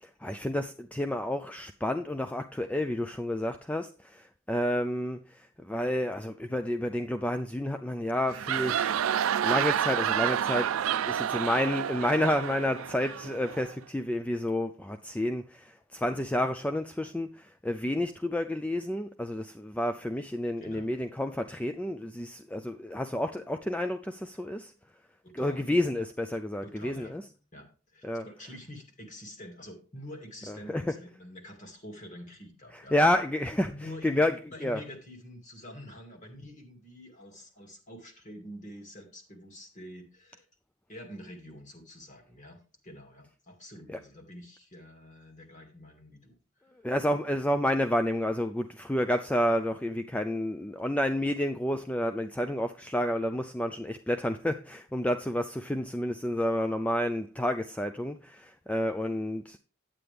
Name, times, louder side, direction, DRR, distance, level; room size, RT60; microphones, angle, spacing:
voice 1, 0.0-8.9 9.4-24.7 25.3-27.2 28.0-28.3 30.5-30.8 32.7-33.7 34.0-34.3 34.6-34.8 43.9-44.0 46.8-59.6, left 1 dB, 5° left, 0.3 m, -30 dB
sound 1, 8.2-13.7, right 9 dB, 85° right, 0.4 m, -29 dB
voice 2, 20.6-21.0 24.3-24.4 25.2-25.7 25.9-26.0 26.6-27.1 27.5-33.0 33.7-40.5 40.9-46.7, left 1 dB, 40° left, 2.2 m, -47 dB
9.5 x 8.8 x 3.4 m
head